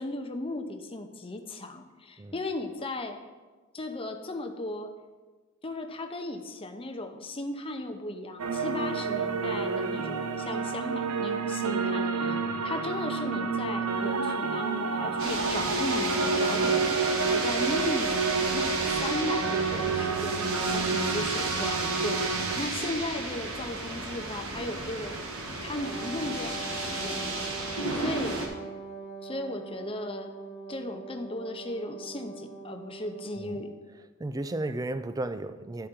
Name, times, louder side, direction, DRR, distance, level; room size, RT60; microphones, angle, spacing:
voice 1, 0.0-3.2 3.7-4.9 5.6-28.4 29.2-30.3 30.7-33.7, left 2 dB, 25° left, 0.7 m, -36 dB
sound 1, 8.4-22.6, right 4 dB, 85° right, 0.6 m, -29 dB
sound 2, 15.2-28.5, right 3 dB, 65° right, 1.3 m, -33 dB
Wind instrument woodwind instrument, 25.7-33.8, right 3 dB, 50° left, 1.2 m, -42 dB
voice 2, 34.2-35.9, right 2 dB, 15° right, 0.3 m, -34 dB
11.5 x 4.9 x 4.4 m
head